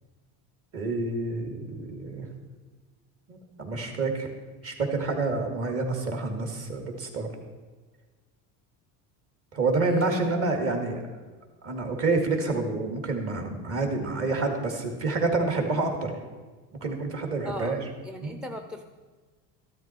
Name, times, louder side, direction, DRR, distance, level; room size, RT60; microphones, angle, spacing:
voice 1, 0.7-2.3 3.3-4.3 4.6-7.3 9.5-11.0 11.6-16.2 16.8-17.8 18.2-18.4, right 3 dB, 40° right, 3 dB, 2.3 m, -28 dB
voice 2, 17.4-18.8, left 2 dB, ahead, 6 dB, 0.5 m, -36 dB
13.5 x 12.5 x 4.5 m, 1.4 s
cardioid pair, 150°, 35 cm